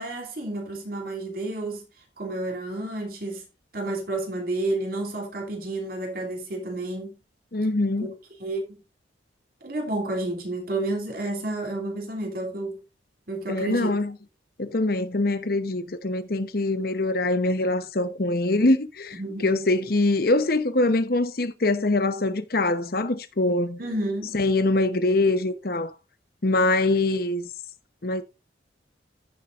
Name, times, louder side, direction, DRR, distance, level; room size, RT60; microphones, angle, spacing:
voice 1, 0.0-1.8 2.2-3.4 3.7-7.2 8.0-8.1 8.4-8.8 9.6-12.8 13.3-14.0 19.1-19.5 23.8-24.4, right 2 dB, 50° right, 3.1 m, -30 dB
voice 2, 7.5-8.1 13.5-14.1 14.6-23.8 24.3-25.9 26.4-27.5 28.0-28.2, left 2 dB, 55° left, 0.9 m, -23 dB
15.0 x 7.4 x 2.5 m
head